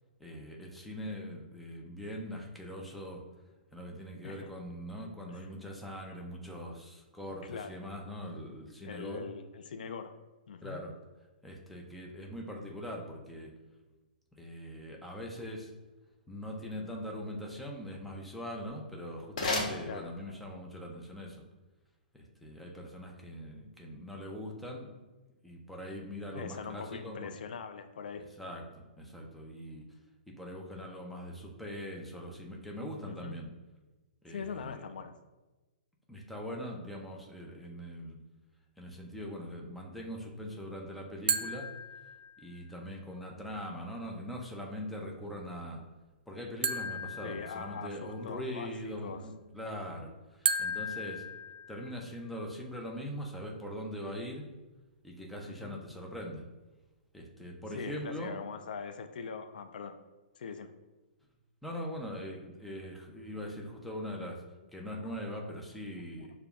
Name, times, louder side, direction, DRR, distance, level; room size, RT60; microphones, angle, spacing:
voice 1, 0.2-3.2 3.7-9.3 10.6-10.9 11.4-13.5 14.4-15.7 16.3-21.4 22.1-24.9 25.4-27.3 28.4-29.8 30.3-33.5 34.2-34.9 36.1-38.2 38.8-41.7 42.4-45.8 46.3-51.2 51.7-54.5 55.0-56.4 57.1-58.3 61.6-64.4 64.7-66.3, equal, ahead, -1 dB, 0.4 m, -42 dB
voice 2, 8.8-10.1 10.5-10.8 19.9-20.1 26.3-28.2 33.1-33.4 34.3-35.1 47.2-49.2 55.4-55.8 57.7-60.0 60.4-60.7 65.0-65.1, left 6 dB, 70° left, 8 dB, 0.4 m, -42 dB
sound 1, 18.6-20.6, left 2 dB, 55° left, 1.0 m, -36 dB
sound 2, 41.3-42.6 46.6-48.2 50.5-52.2, right 3 dB, 75° right, 0.3 m, -35 dB
6.7 x 2.3 x 2.3 m, 1.1 s
hypercardioid pair, 160°, 5 cm